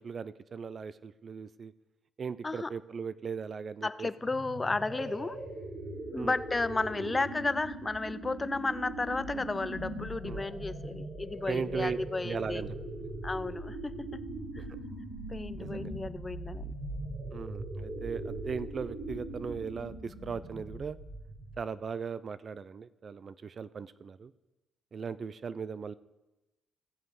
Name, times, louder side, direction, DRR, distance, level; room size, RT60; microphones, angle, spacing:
voice 1, 0.0-1.7 2.2-4.1 6.1-6.3 10.3-10.5 11.5-12.0 12.2-12.8 14.6-14.7 15.6-15.9 17.3-21.0 21.6-24.3 24.9-25.9, right 6 dB, 45° right, 16 dB, 0.4 m, -38 dB
voice 2, 3.8-5.4 6.1-12.6 13.2-13.9 14.5-14.6 15.3-16.7, left 3 dB, 20° left, 15 dB, 0.4 m, -33 dB
sound 1, 4.2-21.7, right 1 dB, 85° right, 4.4 m, -40 dB
16.0 x 7.1 x 4.8 m, 1.1 s
cardioid pair, 90°, 0 cm